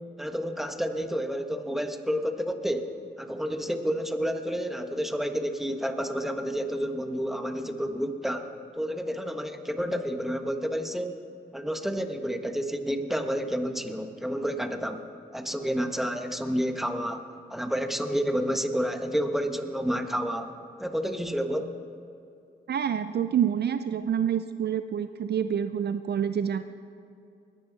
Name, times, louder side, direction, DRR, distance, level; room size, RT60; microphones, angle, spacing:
voice 1, 0.2-2.9 3.2-8.5 8.8-11.1 11.5-15.0 15.3-17.2 17.5-20.5 20.8-21.7, equal, ahead, 6 dB, 1.3 m, -30 dB
voice 2, 22.7-26.7, right 8 dB, 55° right, 11 dB, 0.5 m, -27 dB
21.5 x 9.8 x 4.1 m, 2.6 s
supercardioid pair, 55°, 20 cm